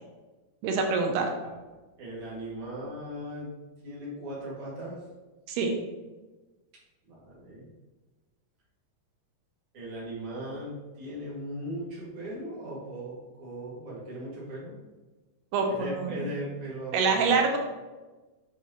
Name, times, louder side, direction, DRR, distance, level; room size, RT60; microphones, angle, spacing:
voice 1, 0.6-1.3 5.5-5.7 15.5-16.2 16.9-17.6, right 4 dB, 90° right, 3 dB, 2.8 m, -25 dB
voice 2, 2.0-3.5 3.8-5.0 7.1-7.7 9.7-14.8 15.7-17.6, right 1 dB, 40° right, -6 dB, 2.9 m, -38 dB
7.8 x 6.0 x 3.1 m, 1.2 s
omnidirectional pair, 4.4 m